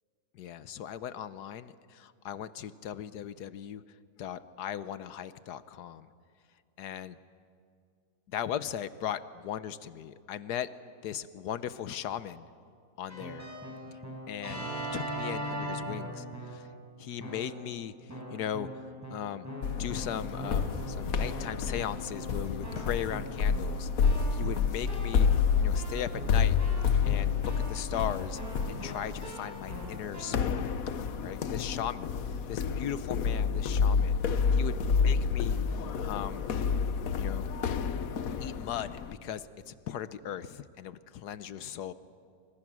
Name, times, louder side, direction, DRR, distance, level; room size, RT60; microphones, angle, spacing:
voice 1, 0.4-3.8 4.2-6.1 6.8-7.2 8.3-10.7 11.0-12.5 13.0-13.5 14.3-16.7 17.0-18.7 19.1-19.5 19.8-25.3 25.6-26.6 27.0-28.4 28.7-30.8 31.2-32.1 32.5-36.5 37.2-37.5 38.4-41.9, left 10 dB, 80° left, 14 dB, 1.4 m, -38 dB
Keyboard (musical), 13.1-16.7 17.2-17.7 18.1-30.6, equal, 10° right, 6.3 m, -41 dB
sound 1, 19.6-39.1, left 6 dB, 65° left, 1.3 m, -29 dB
28.5 x 25.5 x 6.2 m, 2.3 s
omnidirectional pair, 1.7 m